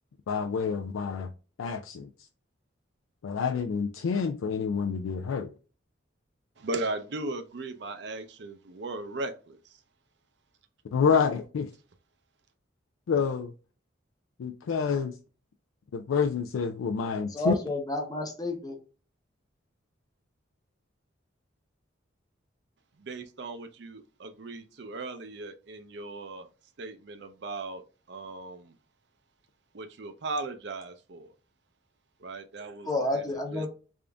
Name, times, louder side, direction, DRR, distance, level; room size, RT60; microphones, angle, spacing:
voice 1, 0.3-1.3 1.6-2.1 3.2-5.5 10.9-11.7 13.1-13.5 14.4-15.2 15.9-17.5, left 6 dB, 85° left, 0.4 m, -28 dB
voice 2, 6.6-9.8 23.0-26.5 26.8-28.7 29.7-31.3 32.2-33.6, right 2 dB, 55° right, 0.5 m, -37 dB
voice 3, 17.3-18.8 32.8-33.7, left 1 dB, 20° left, 0.7 m, -30 dB
3.6 x 2.5 x 3.3 m
head